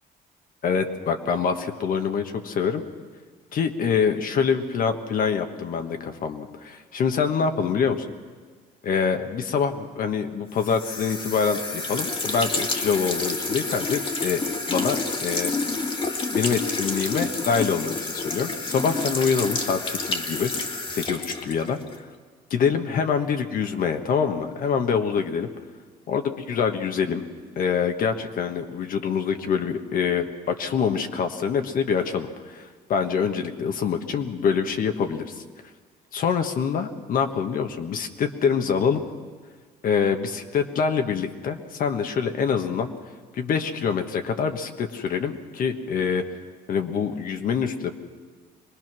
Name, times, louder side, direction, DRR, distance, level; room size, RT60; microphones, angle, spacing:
voice 1, 0.6-2.8 3.5-8.1 8.8-14.4 14.7-15.7 16.3-22.1 22.5-25.5 26.1-27.2 27.6-35.4 36.1-39.0 39.8-42.9 43.3-46.2 46.7-47.9, left 6 dB, 55° left, 6 dB, 1.4 m, -25 dB
sound 1, 10.6-22.0, left 3 dB, 30° left, 1.9 m, -29 dB
23.5 x 19.5 x 6.2 m, 1.5 s
cardioid pair, 110°, 17 cm